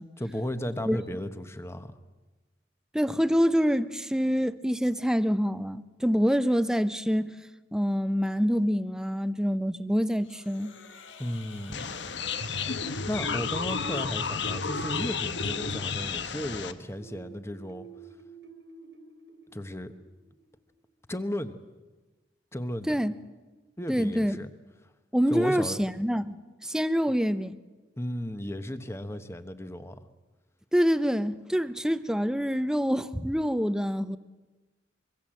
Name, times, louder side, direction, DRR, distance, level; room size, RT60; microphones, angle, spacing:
voice 1, 0.2-2.0 11.2-11.9 13.1-17.9 19.5-19.9 21.1-21.6 22.5-23.0 23.8-24.5 25.3-25.8 28.0-30.0, left 1 dB, 15° left, 1.2 m, -34 dB
voice 2, 2.9-7.4 7.7-10.7 22.9-23.1 23.9-24.4 25.1-26.3 26.6-27.5 30.7-34.2, equal, 5° right, 0.7 m, -26 dB
sound 1, 10.2-14.3, left 5 dB, 90° left, 1.9 m, -51 dB
sound 2, 11.7-16.7, left 5 dB, 70° left, 1.2 m, -31 dB
sound 3, 16.9-20.6, right 6 dB, 70° right, 2.4 m, -50 dB
25.0 x 24.0 x 7.7 m
head